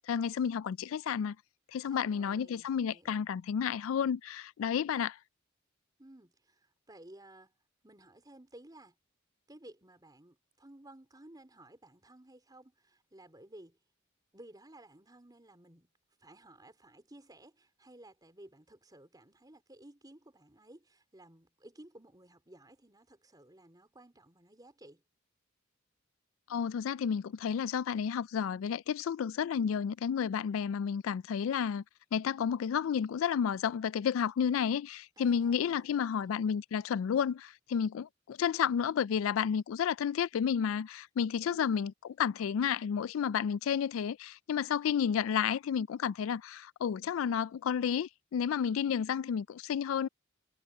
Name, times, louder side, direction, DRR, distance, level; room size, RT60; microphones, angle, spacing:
voice 1, 0.1-1.4 1.7-5.2 26.5-31.8 32.1-41.9 42.2-50.1, left 7 dB, 85° left, 0.3 m, -31 dB
voice 2, 1.9-3.2 6.0-7.5 7.8-9.0 9.5-13.8 14.3-15.9 16.2-25.0 35.2-36.3 41.3-41.6, right 1 dB, 20° right, 4.1 m, -56 dB
head